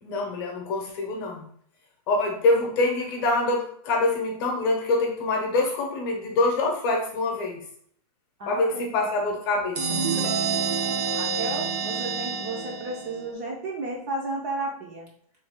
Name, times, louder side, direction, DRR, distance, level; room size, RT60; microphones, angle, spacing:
voice 1, 0.0-1.4 2.1-7.6 8.5-10.0, left 2 dB, 35° left, 1 dB, 0.8 m, -25 dB
voice 2, 8.4-9.1 11.1-15.1, right 2 dB, 25° right, -1 dB, 0.5 m, -33 dB
sound 1, 9.7-13.3, right 5 dB, 80° right, 0.7 m, -28 dB
3.1 x 2.3 x 3.5 m, 0.64 s
hypercardioid pair, 155°, 21 cm